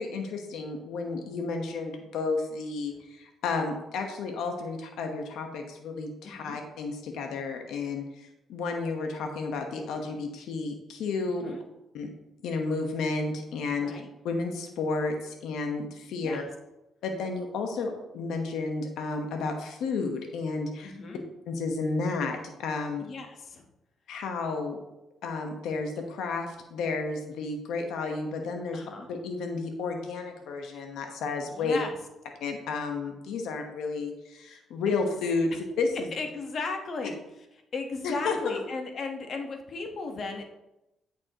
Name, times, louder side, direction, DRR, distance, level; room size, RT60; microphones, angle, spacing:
voice 1, 0.0-8.0 8.5-11.5 11.9-12.1 12.4-13.9 14.2-16.4 17.0-20.9 21.5-23.0 24.1-24.8 25.2-28.8 29.1-31.8 32.4-36.1 38.0-38.6, left 3 dB, 80° left, 4 dB, 1.2 m, -32 dB
voice 2, 6.2-6.6 11.4-11.6 13.8-14.1 16.1-16.4 20.8-21.2 23.0-23.7 28.7-29.1 31.4-32.0 34.9-35.0 36.1-37.2 37.7-40.4, left 3 dB, 55° left, 4 dB, 1.3 m, -36 dB
8.7 x 7.4 x 3.0 m, 0.92 s
cardioid pair, 90°, 0 cm